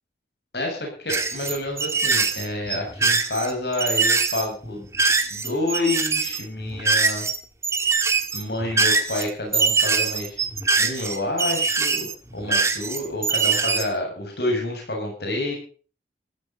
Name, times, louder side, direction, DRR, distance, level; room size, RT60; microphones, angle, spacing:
voice 1, 0.5-4.9 5.3-7.2 8.3-10.4 10.8-15.5, left 2 dB, 65° left, 1 dB, 7.4 m, -28 dB
sound 1, 1.1-7.4 7.6-13.8, right 4 dB, 15° right, 1.7 m, -23 dB
15.0 x 15.0 x 5.5 m, 0.40 s
head